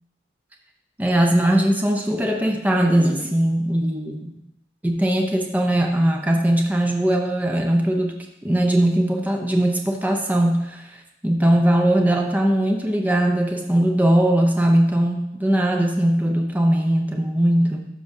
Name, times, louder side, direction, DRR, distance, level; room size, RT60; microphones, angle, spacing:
voice 1, 1.0-4.3 4.8-10.9 11.2-17.9, right 1 dB, 10° right, 2 dB, 0.6 m, -20 dB
12.0 x 5.9 x 2.7 m, 0.85 s
head